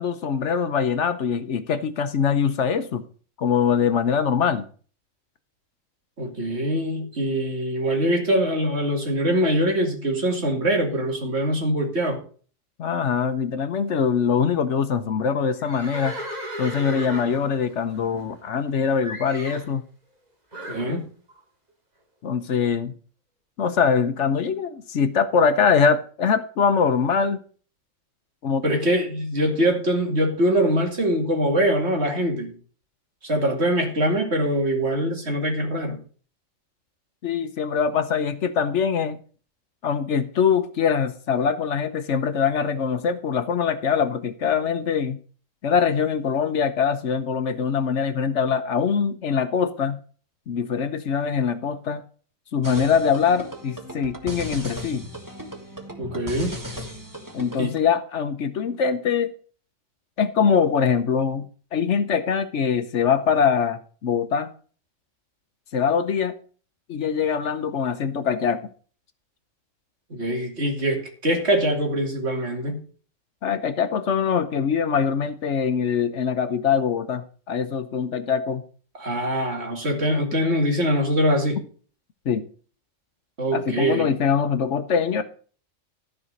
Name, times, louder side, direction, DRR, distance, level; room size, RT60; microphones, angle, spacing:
voice 1, 0.0-3.0 3.4-4.6 12.8-16.2 16.6-19.8 20.9-21.0 22.2-22.9 23.6-27.4 28.4-28.6 37.2-39.2 39.8-45.2 45.6-50.0 50.5-52.0 52.5-55.0 57.3-59.3 60.2-61.5 61.7-64.5 65.7-66.3 66.9-68.6 73.4-78.6 82.3-82.5 83.5-85.2, left 6 dB, 65° left, 11 dB, 1.1 m, -23 dB
voice 2, 6.2-12.2 20.7-21.1 28.6-32.5 33.2-36.0 56.0-56.6 57.6-57.7 70.1-72.8 79.0-81.6 83.4-84.1, equal, 55° right, 2 dB, 2.7 m, -23 dB
Livestock farm animals working animals, 15.6-18.7 19.0-19.7 20.5-20.9, right 1 dB, 30° right, 2.2 m, -36 dB
sound 1, 52.6-57.8, equal, 15° right, 1.6 m, -36 dB
14.0 x 5.0 x 6.5 m, 0.42 s
omnidirectional pair, 1.4 m